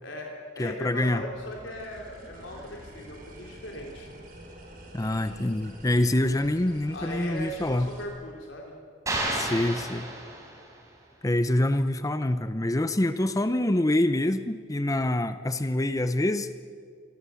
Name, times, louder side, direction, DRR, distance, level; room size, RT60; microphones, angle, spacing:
voice 1, 0.0-4.1 6.9-8.7, left 1 dB, 70° left, -1 dB, 3.5 m, -38 dB
voice 2, 0.6-1.2 4.9-7.9 9.3-10.1 11.2-16.5, left 1 dB, 15° left, 11 dB, 0.7 m, -26 dB
sound 1, 1.2-8.0, right 1 dB, 50° right, 5.9 m, -47 dB
sound 2, 9.1-10.8, right 1 dB, 15° right, 4.6 m, -31 dB
28.5 x 23.5 x 7.1 m, 2.1 s
head